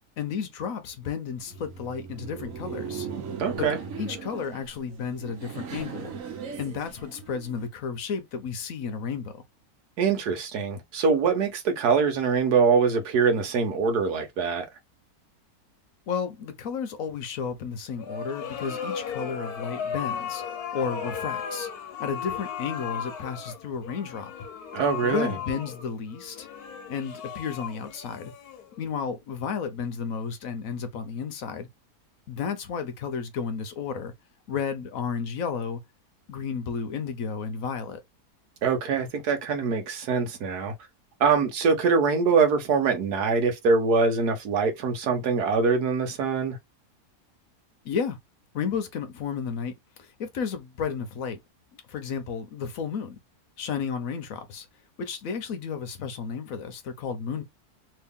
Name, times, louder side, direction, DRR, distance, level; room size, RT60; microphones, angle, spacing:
voice 1, 0.2-3.1 3.6-3.7 4.0-6.1 6.6-9.4 16.1-20.4 20.7-21.7 22.0-24.3 25.0-26.5 26.9-28.3 28.8-31.7 32.3-34.1 34.5-35.8 36.3-38.0 47.8-48.2 48.5-49.7 50.0-51.4 51.9-53.2 53.6-54.7 55.0-57.4, left 6 dB, 65° left, 1.1 m, -32 dB
Laughter, 1.4-7.7, right 6 dB, 65° right, 1.2 m, -38 dB
voice 2, 3.4-3.8 10.0-14.6 24.7-25.4 38.6-40.7 41.2-46.6, right 5 dB, 90° right, 1.4 m, -23 dB
sound 1, 18.0-29.0, left 7 dB, 85° left, 1.3 m, -36 dB
3.0 x 2.9 x 3.5 m
omnidirectional pair, 1.6 m